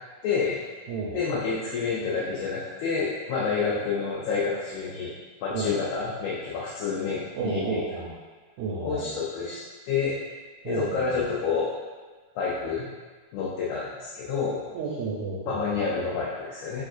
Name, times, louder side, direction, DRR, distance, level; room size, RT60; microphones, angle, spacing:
voice 1, 0.2-0.6 1.1-5.1 5.4-7.8 8.8-9.6 9.9-10.2 10.7-11.8 12.4-12.9 13.3-14.6 15.5-16.9, left 5 dB, 85° left, -6 dB, 2.1 m, -28 dB
voice 2, 0.9-1.2 3.6-3.8 5.5-5.8 7.3-8.1 8.6-9.2 10.6-11.2 14.7-16.1, right 4 dB, 85° right, -4 dB, 2.0 m, -32 dB
6.2 x 3.5 x 2.4 m, 1.4 s
omnidirectional pair, 3.4 m